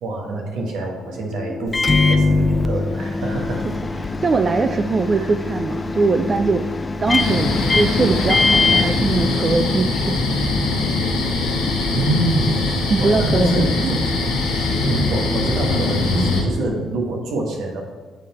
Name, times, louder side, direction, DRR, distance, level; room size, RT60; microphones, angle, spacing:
voice 1, 0.0-3.7 4.7-4.8 5.1-5.3 11.9-12.6 13.0-14.1 14.8-17.8, right 2 dB, 80° right, 0 dB, 1.3 m, -25 dB
sound 1, 1.0-17.0, left 2 dB, 65° left, 1.8 m, -34 dB
Microwave oven, 1.7-9.8, left 3 dB, 30° left, 0.4 m, -22 dB
voice 2, 4.0-6.7 7.0-10.2 12.9-13.9 16.1-16.4, right 4 dB, 40° right, 7 dB, 0.3 m, -21 dB
sound 2, 7.2-16.4, left 3 dB, 90° left, 1.0 m, -22 dB
8.2 x 3.8 x 4.3 m, 1.4 s
supercardioid pair, 60°, 0 cm